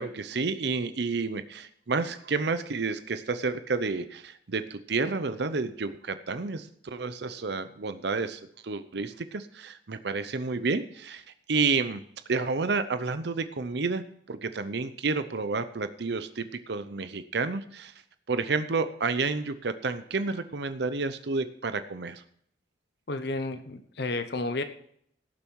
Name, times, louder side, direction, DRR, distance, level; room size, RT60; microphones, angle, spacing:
voice 1, 0.0-12.0 12.3-17.9 18.3-22.2, right 4 dB, 65° right, 12 dB, 0.7 m, -30 dB
voice 2, 23.1-24.6, left 2 dB, 60° left, 9 dB, 0.9 m, -31 dB
17.5 x 7.1 x 4.7 m, 0.67 s
head